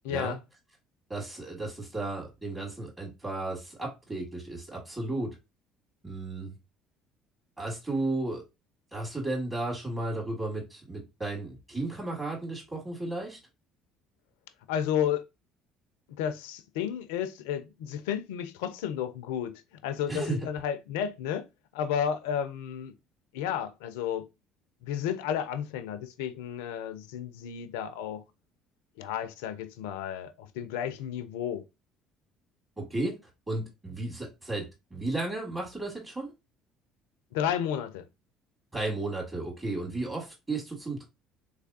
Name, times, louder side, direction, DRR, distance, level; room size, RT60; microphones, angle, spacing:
voice 1, 0.0-0.4 14.7-15.3 16.1-21.5 21.7-22.9 23.3-24.3 24.8-28.3 29.0-31.7 37.3-38.0, left 9 dB, 75° left, 0.4 m, -32 dB
voice 2, 1.1-5.4 6.0-6.5 7.6-8.4 8.9-13.4 20.1-20.4 32.8-33.2 33.5-36.3 38.7-41.0, right 2 dB, 25° right, 1.9 m, -34 dB
3.4 x 3.3 x 2.6 m
hypercardioid pair, 60°, 0 cm